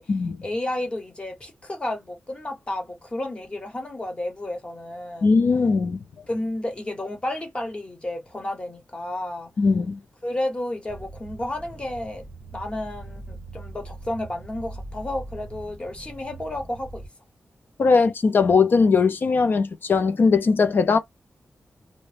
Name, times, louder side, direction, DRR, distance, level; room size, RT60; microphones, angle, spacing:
voice 1, 0.4-5.3 6.3-9.5 10.2-12.3 12.5-17.0, left 1 dB, 25° left, 1.0 m, -31 dB
voice 2, 5.2-6.0 9.6-10.0 17.8-21.0, left 4 dB, 50° left, 0.4 m, -19 dB
sound 1, 10.9-17.1, right 2 dB, 5° right, 1.1 m, -41 dB
2.6 x 2.1 x 3.3 m
wide cardioid pair, 145°, 4 cm